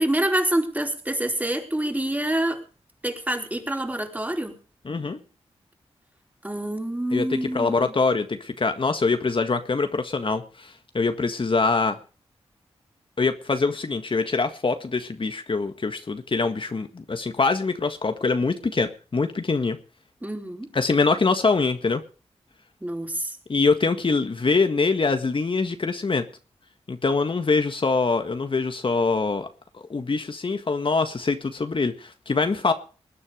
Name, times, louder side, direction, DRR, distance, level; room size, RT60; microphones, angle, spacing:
voice 1, 0.0-2.6 3.0-4.6 6.4-7.9 20.2-20.7 22.8-23.4, right 1 dB, 15° right, 4 dB, 4.2 m, -26 dB
voice 2, 4.9-5.2 7.1-12.0 13.2-19.8 20.7-22.0 23.5-26.2 26.9-29.5 29.7-32.7, left 4 dB, 50° left, 8 dB, 1.7 m, -24 dB
20.5 x 9.8 x 5.1 m, 0.36 s
cardioid pair, 55°, 11 cm